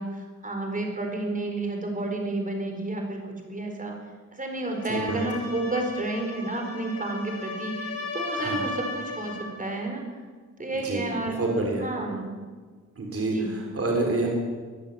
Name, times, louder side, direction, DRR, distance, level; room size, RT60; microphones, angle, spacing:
voice 1, 0.0-4.0 4.3-10.0 10.6-11.4 11.8-12.4 13.3-13.5, right 2 dB, 25° right, 2 dB, 4.5 m, -31 dB
sound 1, 4.6-9.6, left 2 dB, 60° left, 4.8 m, -36 dB
voice 2, 4.9-5.2 8.3-8.7 10.7-11.9 13.0-14.3, right 2 dB, 50° right, 0 dB, 4.1 m, -28 dB
23.5 x 13.5 x 8.7 m, 1.5 s
wide cardioid pair, 175°, 30 cm